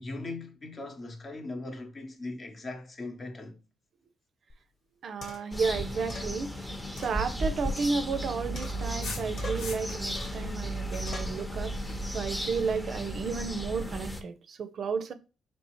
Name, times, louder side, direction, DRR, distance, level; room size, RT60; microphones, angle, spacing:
voice 1, 0.0-3.6, left 2 dB, 40° left, 0.8 m, -39 dB
sound 1, 4.5-4.6 5.2-5.6 6.1-6.3 7.0-8.2 8.5-9.1 9.4-9.8 10.1-10.5 11.1-11.4, left 2 dB, 55° left, 1.1 m, -44 dB
voice 2, 5.0-11.7 12.1-15.1, right 5 dB, 60° right, 0.5 m, -32 dB
sound 2, 5.5-14.2, equal, 5° left, 0.7 m, -34 dB
sound 3, 8.6-10.2 10.5-13.8, left 4 dB, 75° left, 0.9 m, -46 dB
4.2 x 3.2 x 3.0 m
cardioid pair, 90°, 0 cm